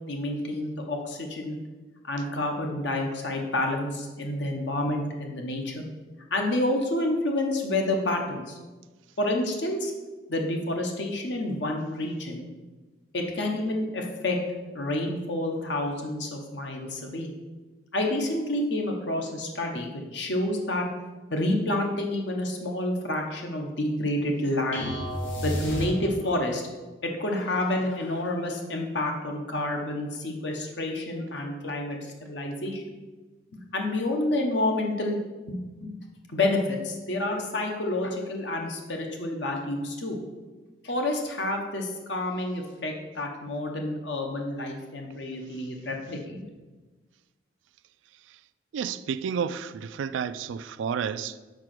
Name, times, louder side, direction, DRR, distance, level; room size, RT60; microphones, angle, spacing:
voice 1, 0.0-1.6 2.0-5.8 6.3-8.6 9.2-9.9 10.3-12.5 13.1-14.4 14.7-17.3 17.9-20.9 21.3-24.9 25.4-26.6 27.0-32.8 33.7-35.2 35.5-36.0 36.3-40.2 40.8-46.4, left 1 dB, 70° left, 1.0 m, -29 dB
sound 1, 24.7-26.5, equal, 90° left, 1.4 m, -31 dB
voice 2, 48.7-51.4, right 7 dB, 85° right, 0.3 m, -31 dB
4.9 x 4.7 x 6.0 m
head